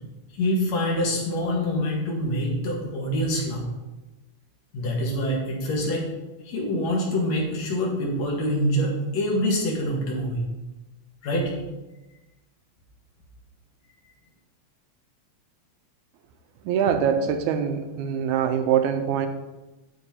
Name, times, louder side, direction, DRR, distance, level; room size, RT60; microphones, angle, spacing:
voice 1, 0.3-3.6 4.7-6.0 6.4-10.4 11.2-11.5, equal, 65° left, -2 dB, 2.7 m, -25 dB
voice 2, 16.7-19.3, right 8 dB, 85° right, 8 dB, 2.1 m, -23 dB
11.5 x 3.9 x 4.3 m, 1.1 s
omnidirectional pair, 3.4 m